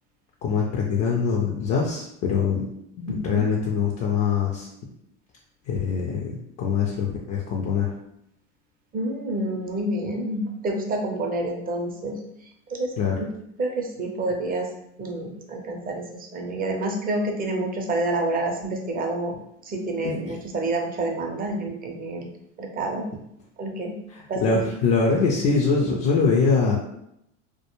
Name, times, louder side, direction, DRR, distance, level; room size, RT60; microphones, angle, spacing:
voice 1, 0.4-2.7 3.0-4.7 5.7-7.9 13.0-13.2 20.0-20.4 24.1-26.8, left 5 dB, 40° left, -2 dB, 0.5 m, -23 dB
voice 2, 3.1-3.5 8.9-12.2 12.7-12.9 13.6-14.7 15.0-16.0 16.3-19.3 19.7-22.3 22.6-23.0 23.6-23.9 24.3-24.6, right 2 dB, 25° right, 2 dB, 0.5 m, -28 dB
2.1 x 2.1 x 2.9 m, 0.77 s
hypercardioid pair, 90°, 38 cm